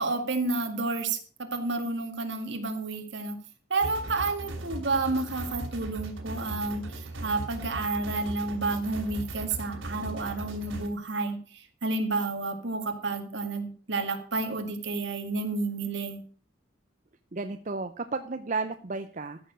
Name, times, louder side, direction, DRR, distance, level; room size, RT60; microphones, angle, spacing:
voice 1, 0.0-3.4 3.7-6.9 7.2-16.2, right 3 dB, 65° right, 6 dB, 2.0 m, -30 dB
sound 1, 3.8-10.9, right 1 dB, 90° right, 2.9 m, -38 dB
voice 2, 17.3-19.4, right 3 dB, 40° right, 8 dB, 0.6 m, -33 dB
14.5 x 6.7 x 6.3 m, 0.42 s
head